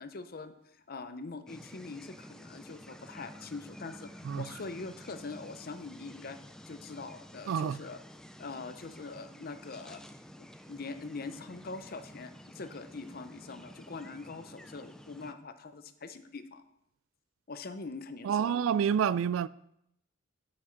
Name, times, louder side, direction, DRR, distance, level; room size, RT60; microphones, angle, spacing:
voice 1, 0.0-4.1 4.4-6.4 6.7-8.0 8.4-10.0 10.4-16.6 17.5-18.6, left 3 dB, 50° left, 0.6 m, -43 dB
sound 1, 1.5-15.3, equal, 5° left, 0.4 m, -51 dB
voice 2, 7.5-7.8 18.2-19.5, right 7 dB, 80° right, 0.3 m, -28 dB
9.6 x 6.2 x 4.4 m
head